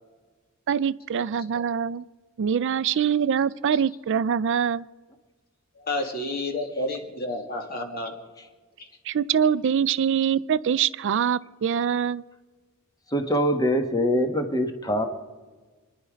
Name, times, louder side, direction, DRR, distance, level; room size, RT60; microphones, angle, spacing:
voice 1, 0.7-2.1 2.4-4.9 9.0-12.2, right 7 dB, 60° right, 17 dB, 0.4 m, -24 dB
voice 2, 5.8-8.2 8.8-8.9, left 2 dB, 45° left, 3 dB, 2.3 m, -30 dB
voice 3, 13.1-15.1, equal, 15° left, 6 dB, 1.3 m, -23 dB
27.5 x 10.5 x 5.1 m, 1.4 s
head